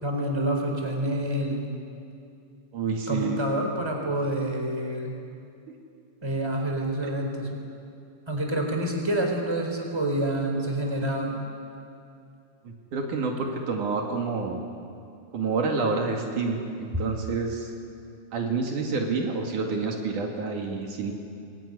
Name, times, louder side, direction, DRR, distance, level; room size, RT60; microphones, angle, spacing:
voice 1, 0.0-1.6 3.1-5.2 6.2-7.5 8.3-11.4, right 1 dB, 10° right, 2 dB, 3.8 m, -27 dB
voice 2, 2.7-3.4 7.0-7.2 12.7-14.6 15.3-17.7 18.3-21.1, right 4 dB, 70° right, 1 dB, 3.6 m, -28 dB
25.0 x 21.5 x 9.8 m, 2.5 s
omnidirectional pair, 3.8 m